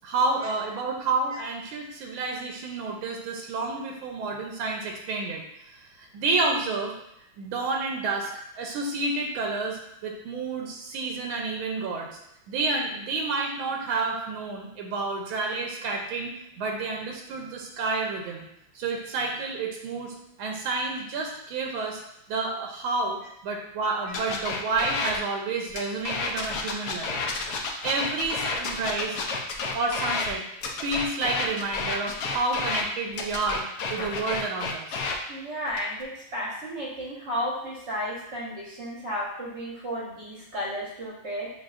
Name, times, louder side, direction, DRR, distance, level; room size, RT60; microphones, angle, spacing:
voice 1, 0.0-5.4 6.0-6.9 7.4-8.3 8.6-12.1 12.5-18.5 18.7-22.0 22.3-23.2 23.4-27.2 27.8-29.2 29.7-30.4 30.8-33.6 33.9-35.0, right 3 dB, 85° right, 1 dB, 1.5 m, -29 dB
sound 1, 24.1-25.2 25.7-30.3 30.6-32.8 33.1-35.2 35.7-36.0, left 4 dB, 70° left, 1.0 m, -30 dB
voice 2, 35.3-41.5, equal, 50° right, -4 dB, 0.9 m, -33 dB
7.3 x 2.7 x 2.4 m, 0.80 s
omnidirectional pair, 2.2 m